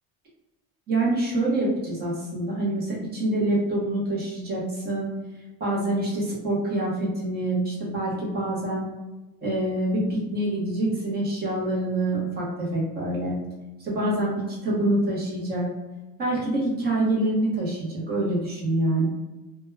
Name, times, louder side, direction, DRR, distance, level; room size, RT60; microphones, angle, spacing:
voice 1, 0.9-5.1 5.6-8.9 9.4-13.4 13.8-15.7 16.2-19.1, right 1 dB, 25° right, -4 dB, 0.7 m, -26 dB
2.2 x 2.1 x 3.1 m, 1.1 s
cardioid pair, 170°, 42 cm